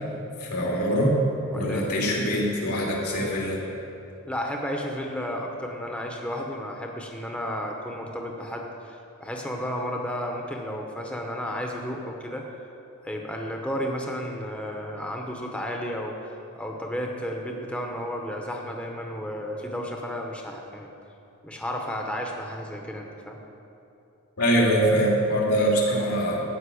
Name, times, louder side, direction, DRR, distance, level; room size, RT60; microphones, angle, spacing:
voice 1, 0.4-1.2 1.5-3.6 24.4-26.4, equal, 80° left, -3 dB, 2.7 m, -23 dB
voice 2, 1.5-1.9 4.3-12.4 13.0-16.1 16.6-20.9 21.4-23.4, equal, 5° left, 1 dB, 0.8 m, -32 dB
13.0 x 5.5 x 8.4 m, 2.9 s
head